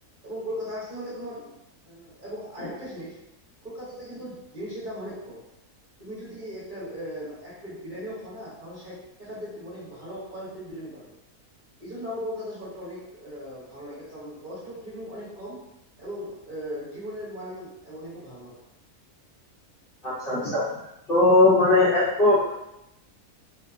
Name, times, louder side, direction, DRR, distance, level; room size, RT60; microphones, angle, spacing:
voice 1, 0.2-1.5 1.8-3.2 3.6-5.4 6.0-11.1 11.8-15.6 16.0-18.6, equal, 40° right, -11 dB, 0.9 m, -38 dB
voice 2, 20.0-20.7 21.1-22.5, left 2 dB, 45° left, -11 dB, 0.8 m, -19 dB
2.6 x 2.3 x 2.4 m, 0.86 s
omnidirectional pair, 1.6 m